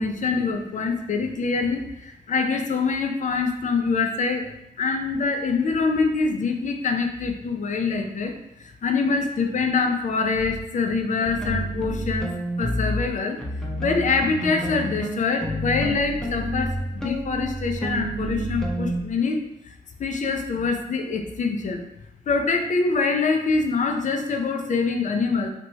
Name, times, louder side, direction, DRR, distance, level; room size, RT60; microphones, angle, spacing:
voice 1, 0.0-4.5 4.8-12.3 12.6-13.4 13.8-19.7 20.0-21.8 22.3-25.5, left 4 dB, 45° left, 4 dB, 0.5 m, -25 dB
sound 1, 10.3-10.6 11.2-13.1 13.4-19.0, equal, 5° left, 0.6 m, -29 dB
2.8 x 2.1 x 3.0 m, 0.83 s
supercardioid pair, 45°, 18 cm